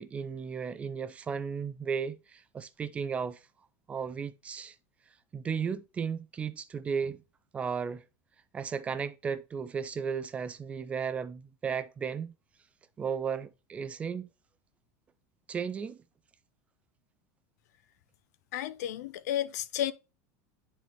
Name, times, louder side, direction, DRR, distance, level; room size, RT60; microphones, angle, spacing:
voice 1, 0.0-3.4 3.9-4.7 5.3-7.2 7.5-8.0 8.5-12.3 13.0-14.3 15.5-16.0, right 6 dB, 15° right, 0.3 m, -34 dB
voice 2, 18.5-19.9, left 11 dB, 90° left, 0.6 m, -32 dB
10.0 x 4.1 x 2.9 m
supercardioid pair, 165°, 9 cm